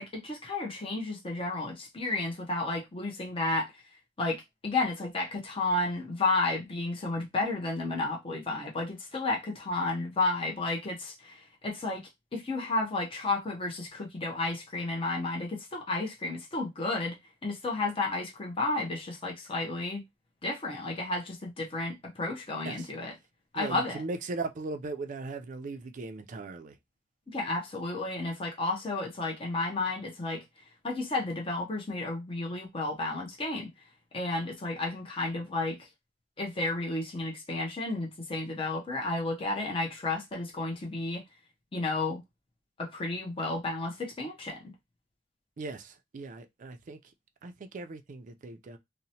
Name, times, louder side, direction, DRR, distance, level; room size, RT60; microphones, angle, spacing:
voice 1, 0.0-3.7 4.2-12.0 12.3-17.2 17.4-20.0 20.4-23.1 23.5-24.0 27.3-30.4 30.8-33.7 34.1-35.9 36.4-41.2 41.7-42.2 42.8-44.6, left 2 dB, 30° left, 0.6 m, -32 dB
voice 2, 23.6-26.7 45.6-47.0 47.4-48.8, right 3 dB, 45° right, 0.4 m, -38 dB
2.8 x 2.1 x 2.7 m
head